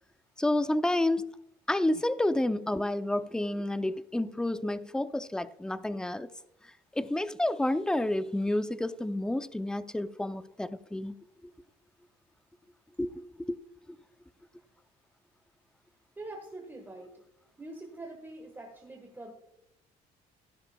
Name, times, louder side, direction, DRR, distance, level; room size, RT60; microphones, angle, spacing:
voice 1, 0.4-1.3 1.7-6.3 7.0-11.1 13.0-13.6, left 1 dB, 5° left, 0.5 m, -30 dB
voice 2, 16.2-17.2 17.6-19.3, right 2 dB, 15° right, 1.4 m, -44 dB
14.0 x 12.0 x 2.3 m
cardioid pair, 110°, 17 cm